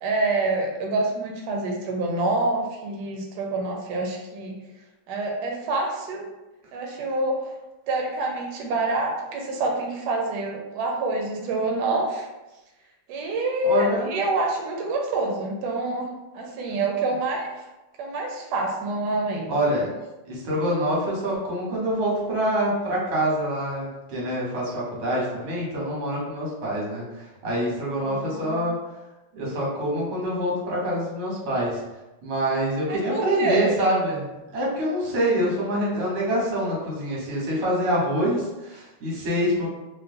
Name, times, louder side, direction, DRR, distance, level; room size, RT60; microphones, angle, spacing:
voice 1, 0.0-4.5 5.1-6.3 6.7-7.5 7.9-12.3 13.1-17.5 18.0-19.5 28.0-28.6 32.9-33.8, right 2 dB, 70° right, 0 dB, 1.1 m, -27 dB
voice 2, 13.6-14.1 19.5-19.9 20.3-28.8 29.3-31.8 32.2-39.7, equal, 90° right, -5 dB, 1.9 m, -25 dB
3.8 x 2.2 x 2.5 m, 1.0 s
omnidirectional pair, 2.2 m